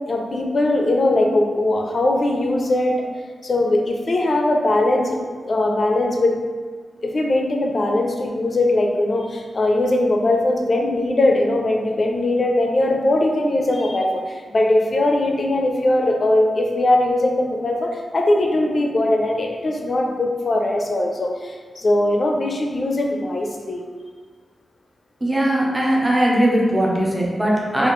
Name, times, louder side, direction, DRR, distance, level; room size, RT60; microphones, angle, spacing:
voice 1, 0.1-3.0 3.4-6.4 7.0-23.8, left 1 dB, 45° left, 1 dB, 0.5 m, -20 dB
voice 2, 25.2-27.9, right 1 dB, 15° right, -4 dB, 0.6 m, -19 dB
4.1 x 2.4 x 3.0 m, 1.5 s
wide cardioid pair, 115°, 0 cm